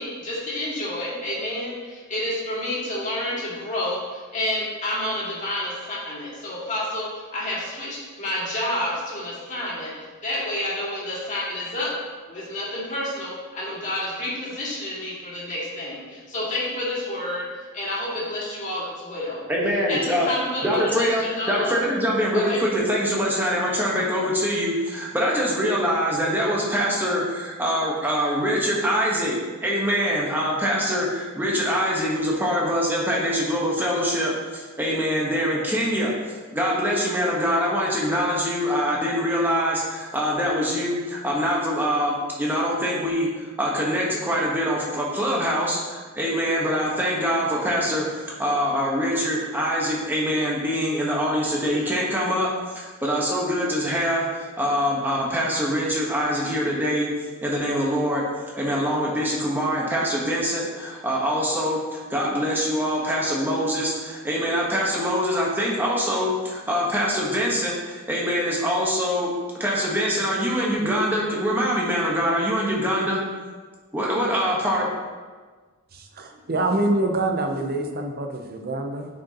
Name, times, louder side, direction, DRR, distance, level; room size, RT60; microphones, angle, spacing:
voice 1, 0.0-11.9 12.3-17.5 17.7-19.4 19.9-21.8 22.3-22.6, left 1 dB, 35° left, -7 dB, 2.2 m, -29 dB
voice 2, 19.5-20.3 20.6-36.1 36.5-43.3 43.6-57.1 57.4-58.2 58.6-69.3 69.6-73.2 73.9-74.9, equal, 10° right, -4 dB, 1.2 m, -24 dB
voice 3, 75.9-79.1, right 2 dB, 45° right, 4 dB, 0.7 m, -25 dB
9.5 x 5.2 x 3.0 m, 1.4 s
head